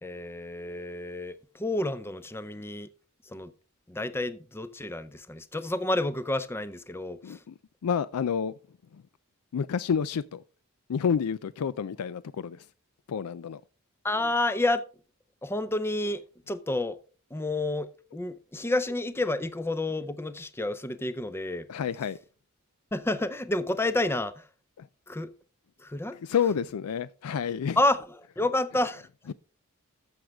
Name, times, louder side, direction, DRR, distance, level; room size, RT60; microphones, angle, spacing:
voice 1, 0.0-2.9 3.2-3.5 3.9-7.4 14.0-14.8 15.4-17.0 17.3-21.7 22.9-24.5 25.1-25.3 25.8-26.2 27.8-28.1 28.4-29.1, left 2 dB, 10° left, 0.5 m, -30 dB
voice 2, 7.2-7.5 7.8-8.6 8.9-9.0 9.5-10.4 10.9-12.7 13.1-13.6 21.7-22.2 24.8-24.9 26.2-27.8 29.3-29.4, left 7 dB, 85° left, 0.4 m, -29 dB
14.0 x 6.4 x 3.5 m
head